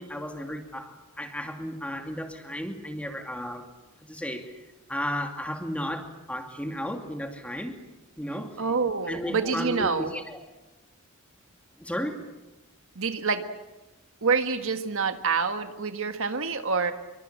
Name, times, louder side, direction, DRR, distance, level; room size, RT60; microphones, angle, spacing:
voice 1, 0.0-3.7 4.0-4.6 4.9-7.8 8.2-8.6 9.1-10.4 11.8-12.2, equal, 5° left, 4 dB, 2.6 m, -34 dB
voice 2, 8.6-10.1 12.9-13.4 14.2-16.9, right 5 dB, 65° right, 7 dB, 1.6 m, -27 dB
27.0 x 24.0 x 7.4 m, 1.1 s
head